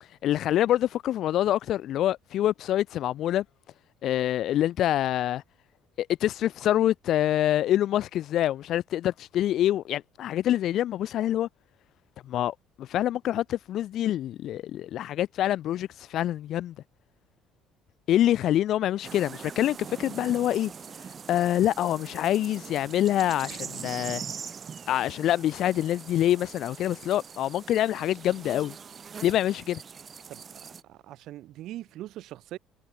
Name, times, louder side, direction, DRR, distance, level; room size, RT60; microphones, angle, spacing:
voice 1, 0.2-3.4 4.0-5.4 6.0-11.5 12.2-16.7 18.1-20.7 21.3-24.2 24.9-28.8 29.2-29.8, left 12 dB, 60° left, 2.6 m, -26 dB
sound 1, 19.0-30.8, right 6 dB, 35° right, 2.7 m, -42 dB
voice 2, 30.3-30.6 30.9-32.6, right 14 dB, 65° right, 6.2 m, -41 dB
cardioid pair, 125°, 0 cm